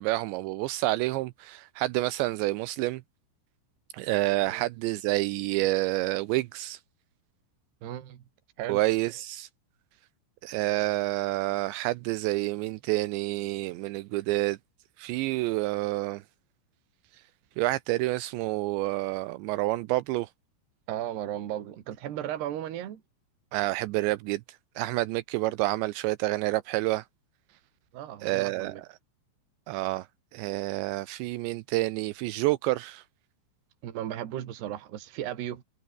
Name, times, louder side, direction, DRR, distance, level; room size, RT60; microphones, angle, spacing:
voice 1, 0.0-3.0 3.9-6.8 8.7-9.5 10.4-14.6 15.0-16.2 17.6-20.3 23.5-24.4 24.8-27.0 28.2-28.9 29.7-30.1 30.3-33.0, right 18 dB, 85° right, 2.7 m, -28 dB
voice 2, 7.8-8.2 8.6-8.8 20.9-23.0 27.9-28.8 33.8-35.6, right 12 dB, 60° right, 4.1 m, -35 dB
omnidirectional pair, 5.6 m